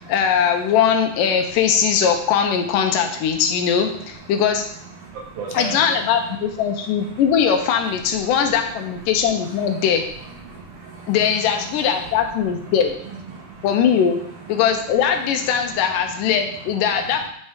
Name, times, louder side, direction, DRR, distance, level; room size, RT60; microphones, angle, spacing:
voice 1, 0.1-4.6 5.5-10.0 11.1-12.9 13.6-14.2 14.5-17.3, left 7 dB, 75° left, 4 dB, 2.1 m, -20 dB
voice 2, 5.0-5.8 7.1-7.2 8.7-8.8 9.3-9.8 10.5-11.2 11.9-12.1 12.7-12.8 13.3-13.7 17.0-17.1, right 4 dB, 70° right, -2 dB, 3.3 m, -36 dB
9.2 x 4.3 x 5.0 m, 0.66 s
omnidirectional pair, 4.5 m